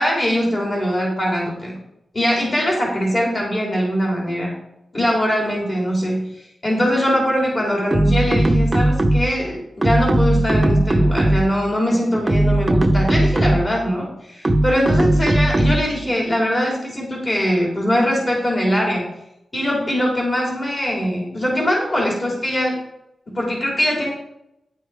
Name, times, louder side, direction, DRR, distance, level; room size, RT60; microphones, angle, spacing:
voice 1, 0.0-1.8 2.1-4.6 4.9-6.3 6.6-19.1 19.5-22.8 23.3-24.1, equal, 30° left, -2 dB, 2.9 m, -21 dB
sound 1, 7.9-9.4 9.8-11.6 12.1-13.8 14.4-16.0, right 1 dB, 20° right, 0.7 m, -18 dB
10.0 x 6.3 x 4.7 m, 0.83 s
wide cardioid pair, 135°, 0 cm